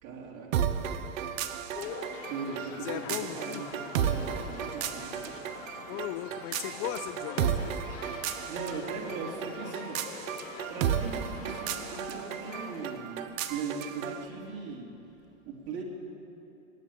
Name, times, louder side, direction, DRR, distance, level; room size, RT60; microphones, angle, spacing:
voice 1, 0.0-1.0 2.3-5.3 5.8-5.9 8.5-10.0 10.7-13.2 13.5-14.9 15.5-15.8, right 4 dB, 40° right, -2 dB, 2.9 m, -39 dB
sound 1, 0.5-14.2, right 8 dB, 80° right, 1.1 m, -34 dB
sound 2, 1.7-13.0, left 6 dB, 70° left, 1.9 m, -45 dB
voice 2, 2.8-3.6 5.9-7.9, left 13 dB, 35° left, 12 dB, 0.4 m, -37 dB
19.0 x 8.8 x 8.5 m, 2.9 s
hypercardioid pair, 120°, 40 cm